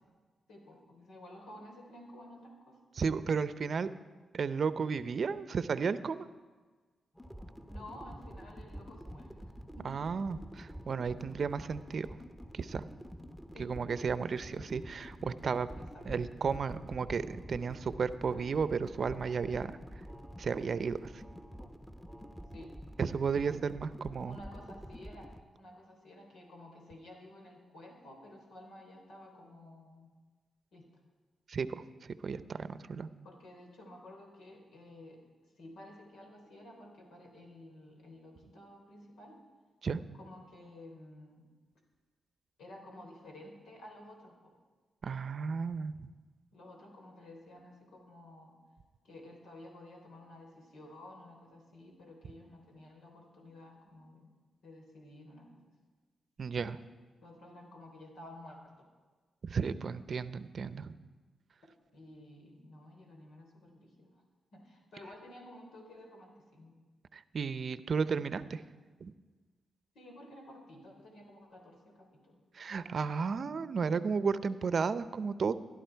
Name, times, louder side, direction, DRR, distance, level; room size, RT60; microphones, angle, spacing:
voice 1, 0.5-2.8 7.7-9.4 9.8-10.3 13.5-13.8 14.3-14.7 15.8-16.1 22.5-22.7 23.3-23.4 24.2-25.3 25.6-30.1 30.7-30.9 33.2-35.2 35.6-39.4 40.1-41.4 42.6-44.6 46.5-48.5 49.0-54.3 54.6-55.7 57.2-58.9 61.9-64.1 64.5-66.7 70.0-72.4, left 1 dB, 85° left, 1 dB, 3.5 m, -52 dB
voice 2, 3.0-3.9 4.3-6.3 9.8-12.1 12.5-12.8 13.6-15.7 16.1-19.7 20.4-21.0 23.0-24.4 31.5-31.7 32.2-33.1 39.8-40.0 45.0-46.1 56.4-56.8 59.4-60.9 67.1-68.6 69.0-69.1 72.5-75.5, right 5 dB, 60° right, 14 dB, 0.6 m, -33 dB
sound 1, 7.1-25.4, equal, 5° left, 1.2 m, -48 dB
17.0 x 11.5 x 4.6 m, 1.4 s
cardioid pair, 55°, 0 cm